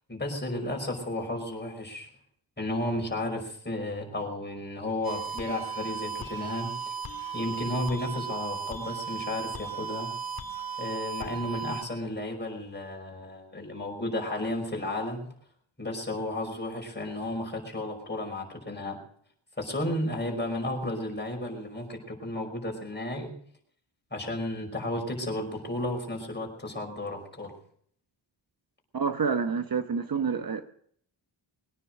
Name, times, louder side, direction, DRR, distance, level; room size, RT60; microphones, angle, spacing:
voice 1, 0.1-2.1 2.6-6.9 7.3-10.1 10.8-15.2 15.8-19.0 19.6-23.3 24.1-27.5, left 1 dB, 20° left, 1 dB, 5.5 m, -33 dB
sound 1, 5.0-11.8, right 6 dB, 45° left, 2.1 m, -36 dB
voice 2, 28.9-30.7, right 5 dB, 45° right, 8 dB, 1.0 m, -28 dB
22.0 x 9.9 x 6.3 m, 0.64 s
cardioid pair, 80°, 47 cm